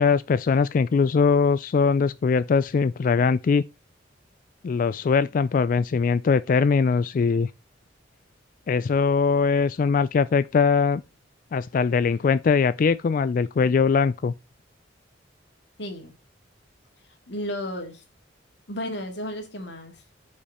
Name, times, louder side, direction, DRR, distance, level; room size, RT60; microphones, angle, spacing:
voice 1, 0.0-3.6 4.6-7.5 8.7-11.0 11.5-14.3, left 5 dB, 45° left, 0.3 m, -21 dB
voice 2, 15.8-16.1 17.3-18.0 18.7-20.0, left 1 dB, 65° left, 2.2 m, -33 dB
8.4 x 5.2 x 4.2 m
head